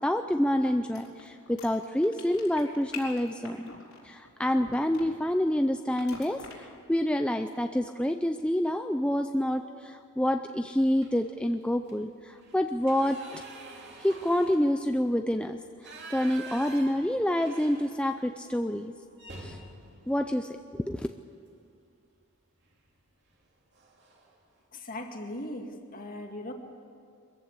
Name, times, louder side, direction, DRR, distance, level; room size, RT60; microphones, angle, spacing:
voice 1, 0.0-3.7 4.0-13.4 14.0-15.6 16.1-18.9 19.4-19.6 20.1-21.1, left 1 dB, 5° left, 6 dB, 0.4 m, -28 dB
sound 1, 0.9-5.4 6.0-6.5, left 5 dB, 80° left, 4.3 m, -43 dB
sound 2, 11.0-11.4 11.8-11.9 12.3-18.3 18.6-18.7 19.1-21.3 22.6-22.9 23.3-23.4 23.7-24.4, right 3 dB, 55° right, 2.7 m, -47 dB
voice 2, 24.7-26.5, left 1 dB, 40° left, 3 dB, 2.1 m, -39 dB
23.0 x 15.0 x 8.3 m, 2.4 s
head